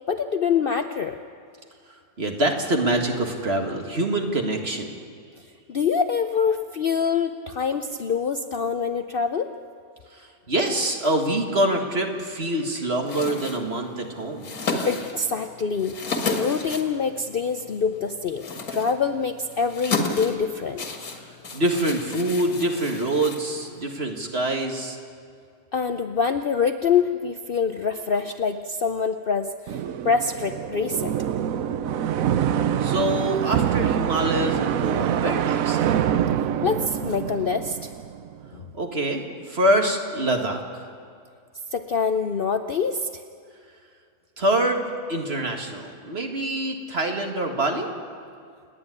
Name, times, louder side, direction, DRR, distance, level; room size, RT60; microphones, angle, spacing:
voice 1, 0.1-1.2 5.7-9.5 14.8-16.0 16.3-18.4 18.7-20.8 25.7-31.1 36.1-36.2 36.6-37.9 38.5-38.6 41.7-43.2, left 5 dB, 50° left, 8 dB, 0.7 m, -25 dB
voice 2, 2.2-4.9 10.1-14.5 21.2-25.0 32.8-35.8 38.7-40.9 44.4-47.9, right 1 dB, 45° right, 3 dB, 2.2 m, -25 dB
sound 1, 13.0-23.9, left 3 dB, 80° left, 2.5 m, -33 dB
sound 2, 29.7-38.5, right 9 dB, 70° right, 1.1 m, -25 dB
29.0 x 9.8 x 9.8 m, 2.3 s
omnidirectional pair, 1.5 m